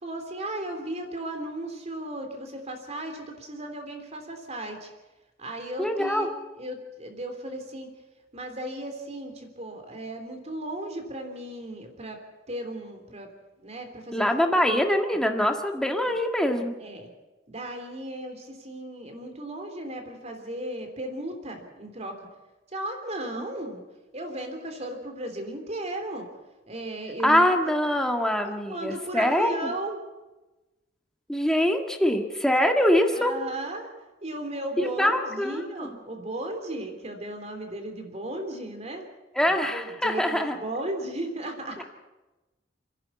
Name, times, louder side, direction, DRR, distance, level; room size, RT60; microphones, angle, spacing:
voice 1, 0.0-4.9 5.4-6.3 6.6-7.9 8.3-12.2 12.5-13.3 13.6-14.2 16.0-16.1 16.8-17.1 17.5-22.3 22.7-23.8 24.1-26.3 26.7-27.7 28.4-30.0 33.1-33.9 34.2-39.1 39.4-41.9, right 1 dB, 35° right, 5 dB, 3.4 m, -35 dB
voice 2, 5.8-6.3 14.1-16.7 23.4-23.5 27.2-29.7 31.3-33.3 34.8-35.9 39.3-40.6, equal, 5° left, 4 dB, 1.7 m, -24 dB
29.5 x 11.0 x 8.5 m, 1.1 s
head